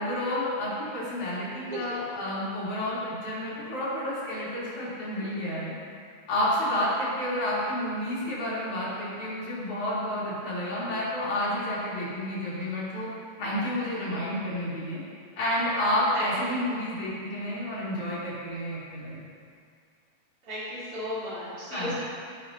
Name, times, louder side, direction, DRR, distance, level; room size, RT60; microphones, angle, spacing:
voice 1, 0.0-5.7 6.3-13.1 13.4-15.0 15.4-19.2 21.7-21.9, left 1 dB, 65° left, -9 dB, 4.7 m, -30 dB
voice 2, 20.4-21.9, equal, 30° right, -10 dB, 3.7 m, -34 dB
17.0 x 11.0 x 2.8 m, 2.2 s
omnidirectional pair, 3.7 m